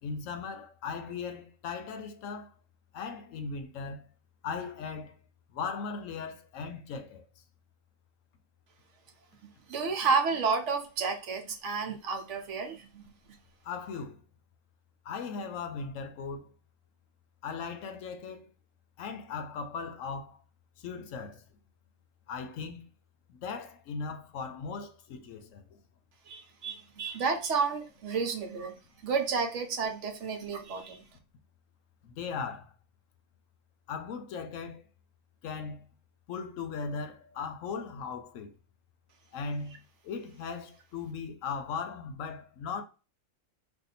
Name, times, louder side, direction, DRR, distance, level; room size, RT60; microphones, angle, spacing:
voice 1, 0.0-2.5 2.9-4.1 4.4-5.2 5.5-7.2 13.6-14.2 15.0-16.5 17.4-18.5 19.0-20.4 20.8-21.4 22.3-22.8 23.3-25.8 32.0-32.7 33.9-34.9 35.4-35.9 36.3-38.5 39.3-42.8, left 5 dB, 75° left, 0.9 m, -38 dB
voice 2, 9.7-13.1 26.3-28.7 29.0-31.0, right 5 dB, 65° right, 1.0 m, -31 dB
2.6 x 2.4 x 4.1 m
omnidirectional pair, 1.4 m